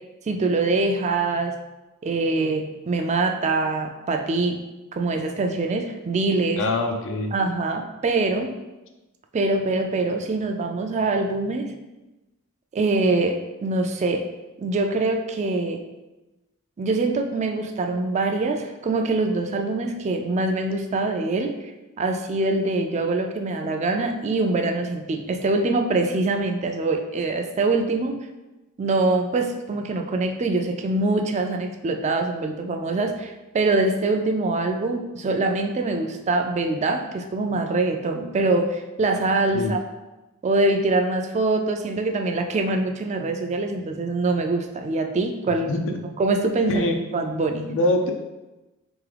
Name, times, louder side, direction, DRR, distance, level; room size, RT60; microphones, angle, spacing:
voice 1, 0.3-1.6 2.0-4.6 4.9-6.7 7.3-8.5 9.3-11.7 12.7-14.2 14.6-15.8 16.8-21.5 22.0-28.2 28.8-39.8 40.4-45.8 46.2-47.7, right 2 dB, 35° right, 4 dB, 0.3 m, -24 dB
voice 2, 6.6-7.3 39.5-39.7 45.7-46.0 46.7-47.0 47.7-48.1, left 2 dB, 65° left, 4 dB, 0.5 m, -24 dB
3.8 x 3.5 x 3.3 m, 1.1 s
head